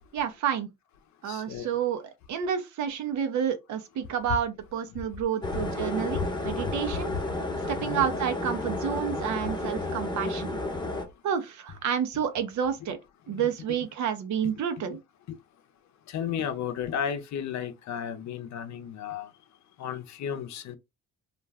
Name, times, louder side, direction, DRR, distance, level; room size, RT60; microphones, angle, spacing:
voice 1, 0.1-0.7 1.2-7.1 7.7-10.5 11.2-13.0 13.3-15.0, right 8 dB, 70° right, 0.7 m, -30 dB
voice 2, 1.3-1.7 5.6-5.7 6.1-6.3 6.6-6.7 7.8-8.0 15.3-15.4 16.1-19.3 19.8-20.8, left 8 dB, 65° left, 0.6 m, -33 dB
sound 1, 5.4-11.0, left 2 dB, 15° left, 0.8 m, -32 dB
2.4 x 2.2 x 3.4 m
cardioid pair, 90°, 30 cm